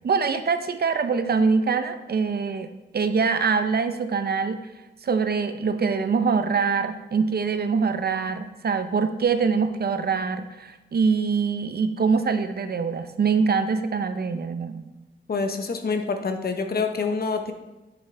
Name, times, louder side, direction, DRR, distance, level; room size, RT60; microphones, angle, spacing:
voice 1, 0.0-4.6 5.0-14.8, right 5 dB, 55° right, 9 dB, 0.6 m, -24 dB
voice 2, 15.3-17.5, left 4 dB, 50° left, 6 dB, 1.0 m, -26 dB
8.5 x 7.5 x 3.4 m, 1.1 s
wide cardioid pair, 105°, 20 cm